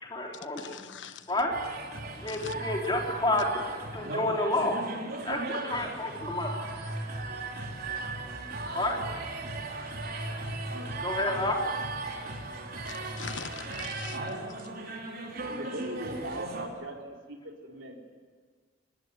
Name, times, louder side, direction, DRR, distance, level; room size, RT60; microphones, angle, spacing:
voice 1, 0.0-0.9 1.3-1.6 2.2-3.6 3.9-4.8 5.2-6.6 8.7-9.0 11.0-11.6, left 2 dB, 25° left, 3.6 m, -29 dB
voice 2, 0.6-1.2 2.3-2.5 12.8-14.2, left 7 dB, 75° left, 1.2 m, -42 dB
sound 1, 1.5-16.6, right 2 dB, 55° right, 4.4 m, -37 dB
voice 3, 15.5-17.0 17.3-18.0, right 1 dB, 90° right, 3.9 m, -40 dB
26.0 x 20.0 x 9.9 m
head